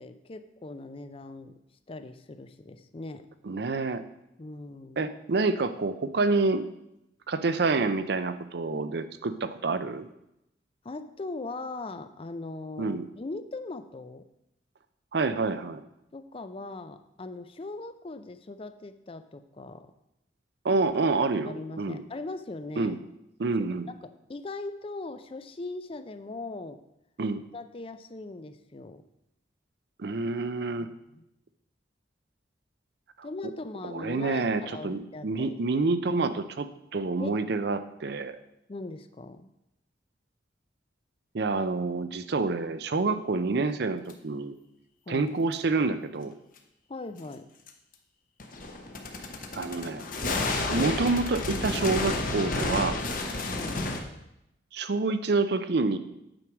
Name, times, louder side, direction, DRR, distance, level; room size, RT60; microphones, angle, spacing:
voice 1, 0.0-1.6 1.9-3.3 4.4-5.0 10.8-14.3 16.1-19.9 21.4-23.0 24.0-26.8 27.5-29.0 30.8-31.2 33.2-35.6 37.2-37.4 38.7-39.5 45.1-45.3 46.9-47.5 53.5-53.8, left 2 dB, 30° left, 11 dB, 0.5 m, -40 dB
voice 2, 3.4-4.0 5.0-6.6 7.3-10.1 12.8-13.1 15.1-15.8 20.6-22.0 22.8-23.0 23.4-23.9 27.2-27.4 30.0-30.9 33.8-38.4 41.3-44.6 45.1-46.3 49.5-50.0 50.7-53.0 54.7-56.0, right 3 dB, 60° right, 11 dB, 0.5 m, -28 dB
sound 1, 44.1-44.2 45.5-45.6 47.7-47.8 48.4-54.0, left 2 dB, 50° left, 0.9 m, -31 dB
8.9 x 4.7 x 6.1 m, 0.85 s
head